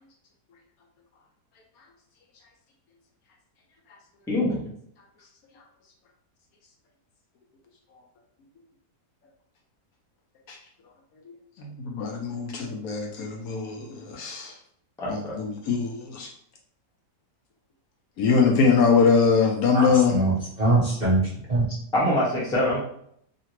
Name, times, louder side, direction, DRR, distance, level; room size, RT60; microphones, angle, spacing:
voice 1, 4.3-4.6 15.0-15.4 21.9-22.8, left 1 dB, 5° left, -5 dB, 0.3 m, -24 dB
voice 2, 11.6-14.5 15.1-16.3 18.2-20.2, left 5 dB, 70° left, 1 dB, 1.0 m, -22 dB
voice 3, 19.7-21.2 21.5-21.6, right 2 dB, 60° right, -7 dB, 0.4 m, -22 dB
2.8 x 2.5 x 2.9 m, 0.68 s
omnidirectional pair, 1.8 m